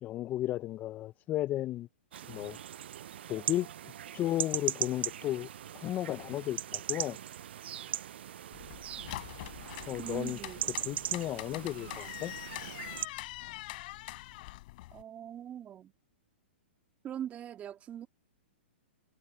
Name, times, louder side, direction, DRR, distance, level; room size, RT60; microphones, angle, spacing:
voice 1, 0.0-1.9 2.3-2.6 3.3-3.7 4.1-5.5 5.7-7.2 9.9-10.4 10.8-12.3, left 14 dB, 25° left, 0.6 m, -34 dB
sound 1, 2.1-13.1, right 11 dB, 65° right, 0.6 m, -39 dB
sound 2, 8.5-15.0, left 19 dB, 50° left, 5.2 m, -44 dB
voice 2, 10.0-10.6 14.9-15.9 17.0-18.1, right 10 dB, 25° right, 3.0 m, -41 dB
hypercardioid pair, 125°, 6 cm